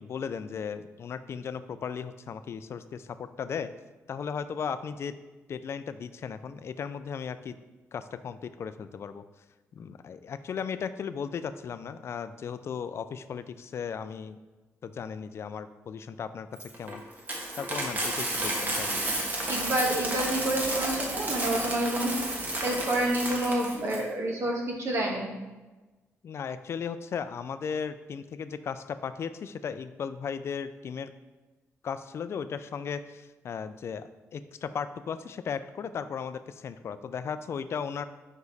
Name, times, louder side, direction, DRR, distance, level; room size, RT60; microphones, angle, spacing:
voice 1, 0.0-3.7 4.1-5.2 5.5-7.5 7.9-9.2 9.7-14.4 14.8-17.0 17.6-19.0 26.2-31.1 31.8-38.0, left 6 dB, 55° left, 12 dB, 0.3 m, -36 dB
Coin (dropping), 16.6-24.0, right 1 dB, 35° right, 1.3 m, -31 dB
voice 2, 19.5-22.1 22.6-25.3, right 1 dB, 60° right, 0 dB, 1.4 m, -28 dB
5.4 x 4.9 x 4.0 m, 1.2 s
cardioid pair, 100°, 5 cm